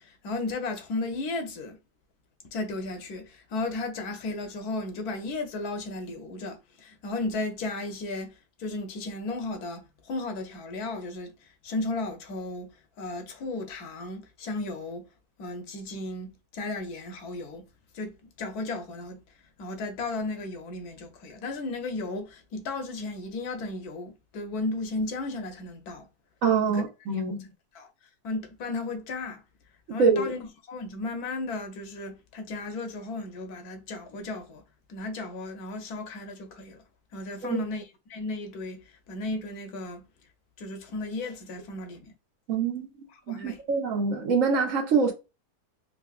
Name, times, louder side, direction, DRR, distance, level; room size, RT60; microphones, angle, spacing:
voice 1, 0.0-1.8 2.4-12.7 13.0-15.1 15.4-17.6 17.9-19.2 19.6-26.1 26.7-26.8 27.1-27.2 27.7-27.9 28.2-29.4 29.9-34.6 34.9-36.8 37.1-40.0 40.6-42.1 43.1-43.6, left 2 dB, 90° left, 1.3 m, -35 dB
voice 2, 26.4-27.4 30.0-30.3 37.5-37.6 42.5-42.9 43.3-45.1, right 5 dB, 60° right, 1.4 m, -24 dB
3.7 x 2.8 x 2.4 m
omnidirectional pair, 1.6 m